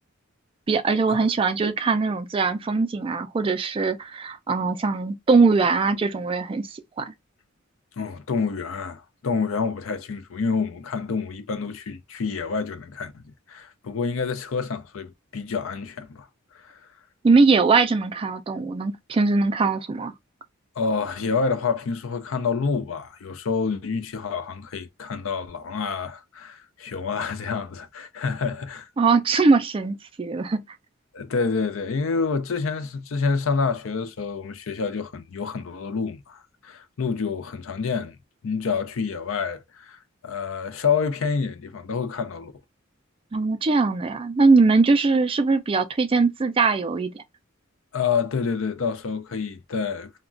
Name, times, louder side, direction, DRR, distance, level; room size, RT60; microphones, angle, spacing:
voice 1, 0.7-7.1 17.2-20.1 29.0-30.6 43.3-47.2, right 4 dB, 25° right, 0.3 m, -21 dB
voice 2, 8.0-13.2 13.5-16.3 16.5-16.8 20.8-28.9 31.1-38.2 38.4-42.5 47.9-50.3, left 5 dB, 75° left, 0.5 m, -28 dB
2.3 x 2.1 x 3.7 m
head